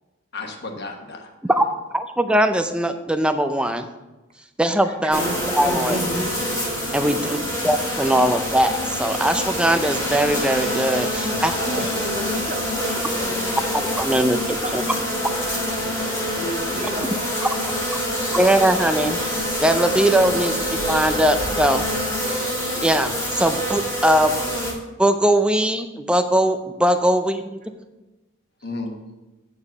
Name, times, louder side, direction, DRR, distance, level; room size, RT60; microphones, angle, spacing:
voice 1, 0.3-1.3 11.1-12.5 20.2-20.4 28.6-29.0, left 2 dB, 50° left, 2 dB, 1.2 m, -33 dB
voice 2, 1.5-3.9 4.6-5.2 5.5-6.0 6.9-7.4 7.6-11.5 14.0-14.4 14.7-14.8 18.3-20.5 20.8-21.8 22.2-22.5 22.8-24.3 25.0-27.6, right 1 dB, 5° right, 8 dB, 0.4 m, -20 dB
sound 1, 5.1-24.7, equal, 15° left, 1.6 m, -26 dB
sound 2, 5.9-13.7 14.2-14.4, equal, 55° right, 0.8 m, -40 dB
voice 3, 6.9-7.4 11.7-13.5 14.1-14.8 16.3-17.1, right 2 dB, 35° right, 2 dB, 1.1 m, -33 dB
8.5 x 4.8 x 5.6 m, 1.1 s
head